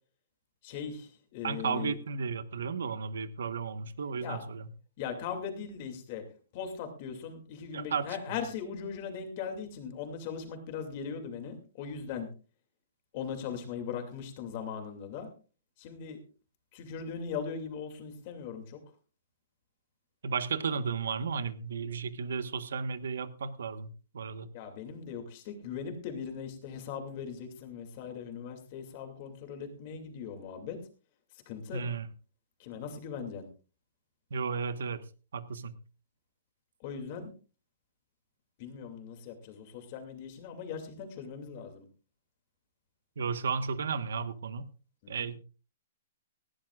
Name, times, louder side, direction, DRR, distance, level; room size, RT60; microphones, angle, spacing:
voice 1, 0.6-1.9 4.2-4.4 5.0-6.2 6.5-12.3 13.1-15.3 15.8-16.2 16.7-18.8 24.5-30.8 31.5-31.8 32.6-33.5 36.8-37.3 38.6-41.8 45.0-45.1, left 6 dB, 30° left, 5 dB, 2.5 m, -39 dB
voice 2, 1.4-4.7 7.7-8.4 20.2-24.5 31.7-32.1 34.3-35.1 35.3-35.8 43.2-44.7 45.1-45.4, right 5 dB, 80° right, 12 dB, 1.3 m, -34 dB
19.0 x 16.0 x 2.4 m, 0.35 s
hypercardioid pair, 175°, 0 cm